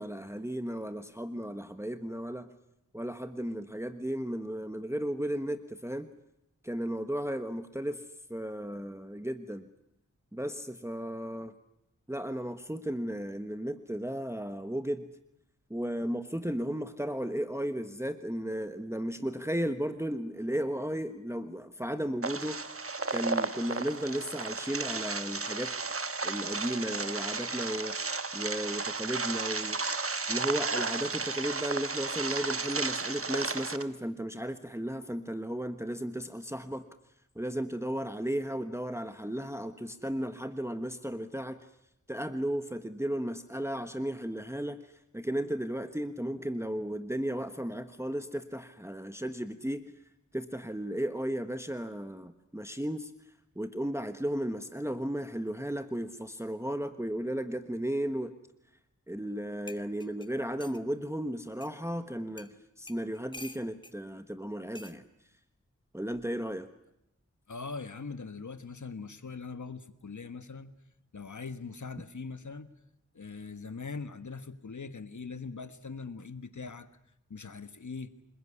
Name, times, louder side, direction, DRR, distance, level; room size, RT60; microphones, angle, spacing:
voice 1, 0.0-2.5 2.9-6.1 6.6-8.0 8.3-9.7 10.3-11.5 12.1-15.1 15.7-22.6 23.1-25.7 26.2-27.9 28.3-29.8 30.3-36.8 37.3-41.6 42.1-44.8 45.1-49.9 50.3-53.1 53.5-58.3 59.1-65.1 65.9-66.7, equal, 10° right, 9 dB, 1.3 m, -34 dB
sound 1, 22.2-33.8, right 3 dB, 45° right, 1.2 m, -33 dB
sound 2, 59.3-59.4 59.7-60.8 61.6-61.7 62.4-62.5 62.9-64.0 64.7-65.0 66.1-66.4, left 2 dB, 15° left, 1.4 m, -48 dB
voice 2, 67.5-70.7 71.1-72.7 73.1-76.9 77.3-78.1, left 4 dB, 70° left, 12 dB, 1.4 m, -41 dB
27.0 x 21.5 x 9.8 m, 0.82 s
wide cardioid pair, 65°, 30 cm